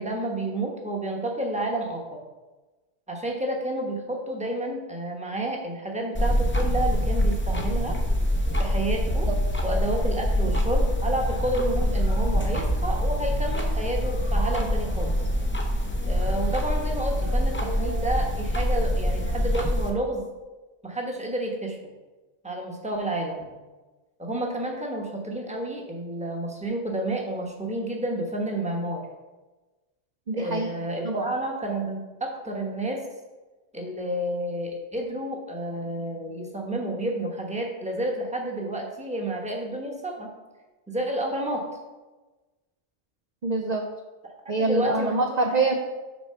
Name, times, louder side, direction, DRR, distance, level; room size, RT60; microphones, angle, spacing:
voice 1, 0.0-2.2 3.1-8.0 8.6-9.3 9.6-15.2 16.0-20.3 20.8-21.8 22.4-23.6 24.2-29.0 30.3-33.0 33.7-40.3 40.9-41.6 44.6-45.6, right 1 dB, 5° right, 0 dB, 0.9 m, -30 dB
sound 1, 6.1-19.9, equal, 15° left, 0.4 m, -25 dB
voice 2, 30.3-30.7 31.0-31.3 43.4-43.9 44.5-45.7, right 3 dB, 55° right, 3 dB, 0.5 m, -25 dB
6.2 x 4.5 x 5.6 m, 1.2 s
omnidirectional pair, 1.3 m